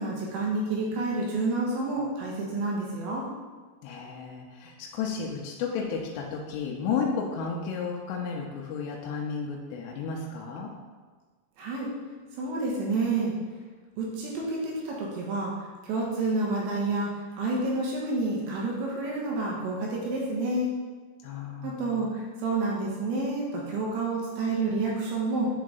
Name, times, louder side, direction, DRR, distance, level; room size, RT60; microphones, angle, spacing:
voice 1, 0.0-3.2 11.6-11.9 12.3-13.3 14.0-20.7 21.6-25.5, right 2 dB, 80° right, -3 dB, 3.1 m, -29 dB
voice 2, 3.8-10.7 21.2-22.0, left 5 dB, 80° left, -2 dB, 2.5 m, -33 dB
9.8 x 3.6 x 3.9 m, 1.4 s
omnidirectional pair, 5.4 m